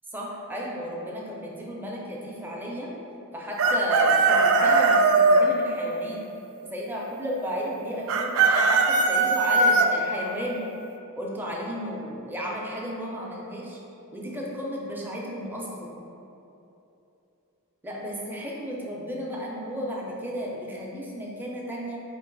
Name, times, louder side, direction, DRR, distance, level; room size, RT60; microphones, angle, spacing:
voice 1, 0.1-2.9 3.3-6.2 6.6-10.7 11.1-13.8 14.1-16.0 17.8-22.0, equal, 10° right, -3 dB, 0.5 m, -33 dB
Chicken rooster, 3.6-5.4 8.1-9.9, right 3 dB, 65° right, 0.3 m, -19 dB
4.5 x 2.4 x 3.9 m, 2.9 s
head